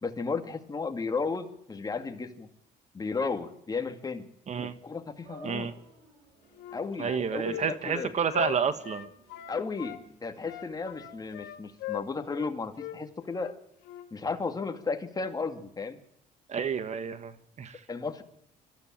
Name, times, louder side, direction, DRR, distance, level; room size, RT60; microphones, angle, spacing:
voice 1, 0.0-2.5 2.9-4.3 4.6-5.7 6.7-8.1 9.5-13.5 14.1-16.0 17.9-18.2, left 4 dB, 20° left, 6 dB, 2.3 m, -34 dB
sound 1, 5.2-11.7, right 1 dB, 70° right, 7.8 m, -53 dB
Wind instrument woodwind instrument, 6.5-10.0 10.4-12.5 12.8-13.0 13.3-13.5 13.8-14.1, left 14 dB, 90° left, 2.1 m, -40 dB
voice 2, 7.0-9.1 16.5-17.8, right 7 dB, 45° right, 13 dB, 1.4 m, -30 dB
22.0 x 13.5 x 9.0 m, 0.75 s
cardioid pair, 110°, 17 cm